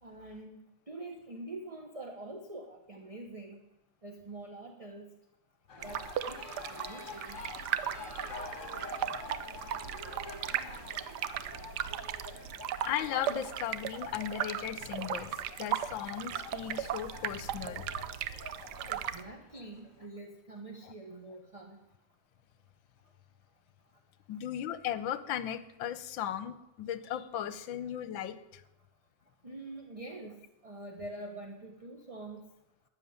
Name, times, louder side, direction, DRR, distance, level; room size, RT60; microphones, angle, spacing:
voice 1, 0.0-3.6 4.0-5.1 5.8-6.4 6.7-7.4 18.9-21.8 29.4-32.4, right 2 dB, 25° right, 4 dB, 0.9 m, -45 dB
sound 1, 5.7-20.1, left 3 dB, 40° left, 2.2 m, -47 dB
sound 2, 5.8-19.2, right 10 dB, 65° right, 1.1 m, -37 dB
voice 2, 12.8-15.3 15.6-18.0 24.3-28.6, left 10 dB, 75° left, 14 dB, 1.5 m, -36 dB
12.5 x 9.3 x 9.5 m, 0.93 s
omnidirectional pair, 2.2 m